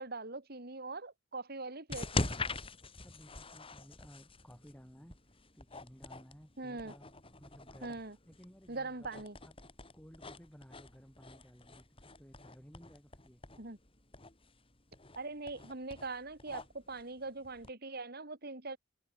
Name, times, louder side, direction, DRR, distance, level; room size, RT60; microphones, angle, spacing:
voice 1, 0.0-2.3 6.6-6.9 7.8-8.2 8.7-9.4 13.6-13.8 15.1-18.8, right 3 dB, 50° right, 2.9 m, -42 dB
sound 1, 1.9-17.7, left 2 dB, 30° left, 4.2 m, -44 dB
voice 2, 3.0-7.1 7.4-9.1 9.4-9.6 9.9-13.4, equal, 10° left, 6.4 m, -57 dB
head